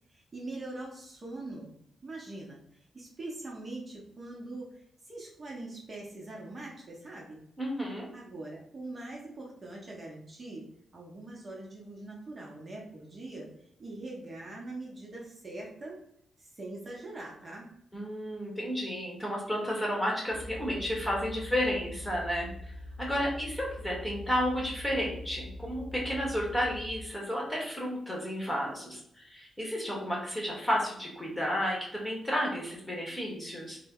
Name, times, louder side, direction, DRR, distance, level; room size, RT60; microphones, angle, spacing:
voice 1, 0.1-1.7 2.0-2.6 2.9-7.4 8.1-10.6 10.9-13.5 13.8-16.0 16.4-17.8, right 2 dB, 35° right, -3 dB, 0.9 m, -42 dB
voice 2, 7.6-8.1 17.9-22.7 23.0-33.8, equal, 10° left, -3 dB, 1.0 m, -32 dB
sound 1, 20.3-27.2, left 1 dB, 70° left, 0.8 m, -43 dB
2.7 x 2.1 x 3.5 m, 0.71 s
cardioid pair, 95°, 0 cm